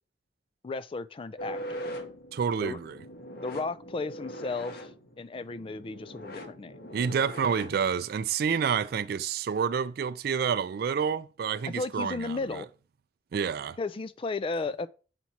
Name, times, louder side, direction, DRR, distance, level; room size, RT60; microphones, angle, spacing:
voice 1, 0.6-2.0 2.6-2.8 3.4-4.9 5.2-6.9 11.7-12.7 13.8-14.9, left 3 dB, 30° left, 0.3 m, -34 dB
sound 1, 1.4-8.1, equal, 55° left, 1.2 m, -42 dB
voice 2, 2.3-3.0 6.9-12.7 13.3-13.8, right 6 dB, 55° right, 0.3 m, -29 dB
5.9 x 4.1 x 4.4 m
head